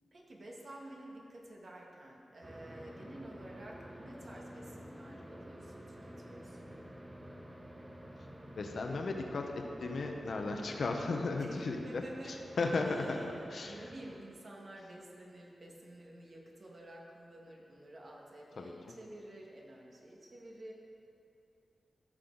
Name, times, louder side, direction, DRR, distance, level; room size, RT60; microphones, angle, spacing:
voice 1, 0.1-6.8 11.4-12.4 12.8-20.7, right 1 dB, 55° right, -2 dB, 1.7 m, -51 dB
sound 1, 2.4-14.2, equal, 20° right, 0.8 m, -50 dB
voice 2, 8.6-13.2 13.5-13.9 18.5-18.7, left 3 dB, 70° left, 3 dB, 0.9 m, -35 dB
14.5 x 6.5 x 4.0 m, 2.7 s
cardioid pair, 75°, 0 cm